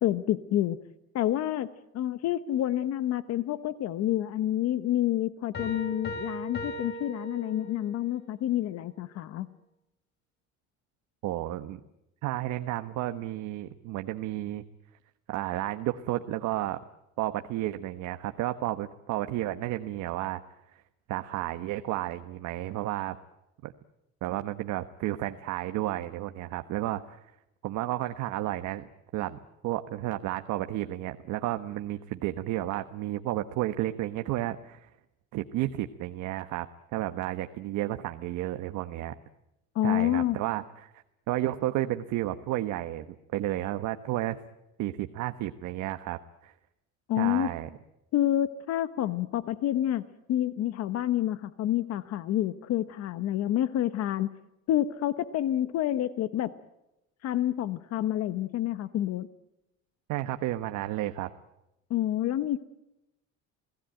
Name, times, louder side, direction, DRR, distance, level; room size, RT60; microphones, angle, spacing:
voice 1, 0.0-0.8 1.1-1.7 1.9-9.5 39.7-40.4 47.1-47.5 48.1-50.0 50.3-54.3 54.7-56.5 57.2-59.3 61.9-62.6, left 12 dB, 55° left, 13 dB, 1.0 m, -28 dB
Piano, 5.5-8.0, equal, 35° left, 4.6 m, -38 dB
voice 2, 11.2-11.8 12.2-14.6 15.3-16.8 17.2-20.4 20.7-20.8 21.1-23.2 23.6-23.7 24.2-27.2 27.6-34.9 35.3-36.7 36.9-39.2 39.8-44.4 44.8-46.5 47.2-47.7 60.1-61.3, right 15 dB, 75° right, 8 dB, 1.2 m, -32 dB
29.0 x 18.5 x 9.0 m, 0.91 s
cardioid pair, 170°, 30 cm